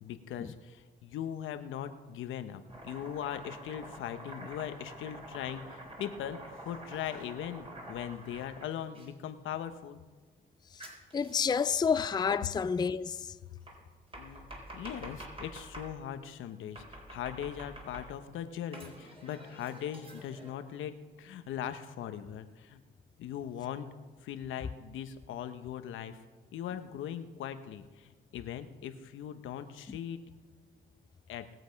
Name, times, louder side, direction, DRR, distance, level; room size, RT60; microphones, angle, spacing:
voice 1, 0.0-10.0 14.2-22.8 23.2-23.9 24.2-26.2 26.5-30.2 31.3-31.4, left 9 dB, 80° left, 1.0 m, -40 dB
Domestic sounds home sounds, 2.7-9.1 10.8-11.9 13.7-15.9 16.8-18.3 18.7-20.5, right 1 dB, 30° right, 4.1 m, -48 dB
voice 2, 11.1-13.2, left 6 dB, 20° left, 0.4 m, -29 dB
20.0 x 7.9 x 5.2 m
cardioid pair, 90°, 20 cm